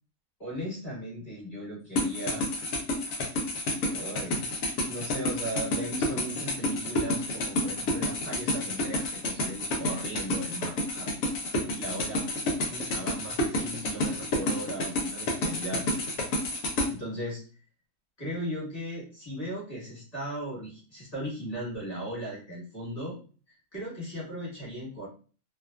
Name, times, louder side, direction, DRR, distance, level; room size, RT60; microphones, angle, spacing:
voice 1, 0.4-2.4 3.8-4.6 4.9-11.1 11.7-15.9 16.9-17.4 18.2-23.2 23.5-25.1, right 1 dB, 25° left, -6 dB, 1.4 m, -37 dB
sound 1, 2.0-16.9, left 1 dB, 70° left, 1.0 m, -29 dB
2.7 x 2.3 x 2.3 m, 0.38 s
omnidirectional pair, 1.7 m